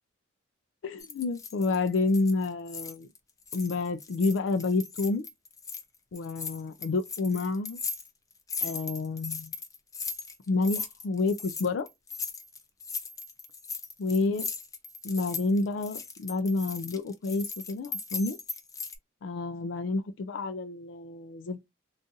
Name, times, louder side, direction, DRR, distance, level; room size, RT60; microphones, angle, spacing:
voice 1, 0.8-3.1 3.5-5.2 6.1-7.8 8.6-9.5 10.5-11.9 14.0-14.5 15.0-18.4 19.2-21.6, left 3 dB, 80° left, 0.4 m, -29 dB
sound 1, 1.0-3.2 3.4-5.8 6.1-19.0, left 5 dB, 20° left, 0.5 m, -38 dB
3.8 x 2.4 x 2.6 m
head